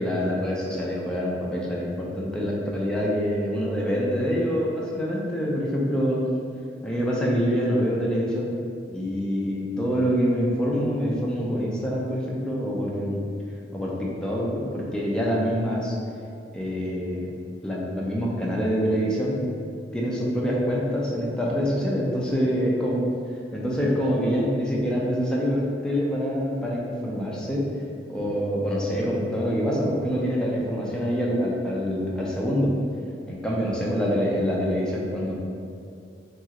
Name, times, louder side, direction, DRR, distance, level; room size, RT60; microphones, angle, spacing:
voice 1, 0.0-6.2 6.8-8.6 8.9-13.2 13.7-15.9 16.5-17.3 17.6-19.4 19.9-23.1 23.5-27.7 28.1-32.7 33.3-35.4, equal, 5° left, -5 dB, 0.4 m, -25 dB
2.9 x 2.4 x 2.8 m, 2.4 s
head